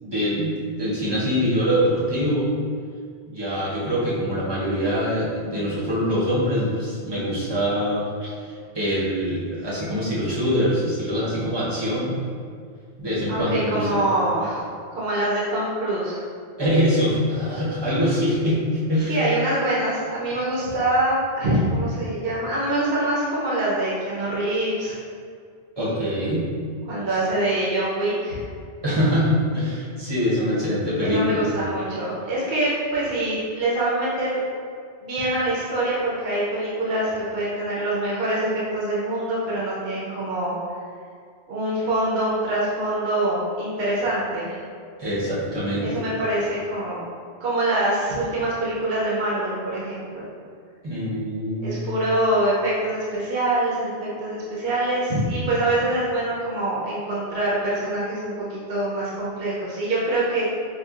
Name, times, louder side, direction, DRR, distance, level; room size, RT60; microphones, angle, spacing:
voice 1, 0.0-2.5 3.3-8.3 8.7-12.2 13.0-14.0 16.6-19.2 25.8-26.5 28.8-31.4 45.0-46.0 50.8-51.8, equal, 25° right, -8 dB, 0.8 m, -24 dB
voice 2, 13.3-14.6 14.9-16.2 19.0-25.0 26.9-28.4 31.0-34.4 35.0-40.5 41.5-44.6 45.8-47.0 47.4-50.2 51.6-60.4, right 1 dB, 60° right, -7 dB, 0.9 m, -24 dB
5.3 x 2.4 x 2.4 m, 2.1 s
omnidirectional pair, 1.2 m